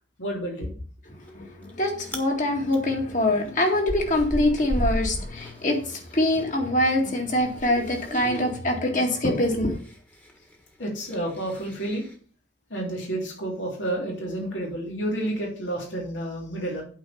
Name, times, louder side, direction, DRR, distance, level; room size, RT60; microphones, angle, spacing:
voice 1, 0.2-0.7 10.8-12.1 12.7-16.8, right 1 dB, 85° left, 3.2 m, -30 dB
voice 2, 1.2-9.8, left 1 dB, 45° left, 2.1 m, -24 dB
Chewing mastication, 1.2-1.7 2.0-2.3 2.7-6.5 6.8-12.2, equal, 10° left, 1.4 m, -35 dB
8.8 x 4.6 x 7.1 m
head